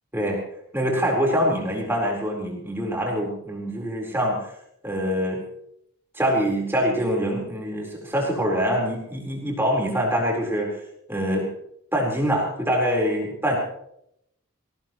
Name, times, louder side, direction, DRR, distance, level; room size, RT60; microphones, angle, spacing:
voice 1, 0.7-4.5 4.8-5.4 6.1-10.7 11.1-11.5 11.9-13.6, equal, 10° right, -2 dB, 4.3 m, -24 dB
22.5 x 18.5 x 3.1 m, 0.75 s
head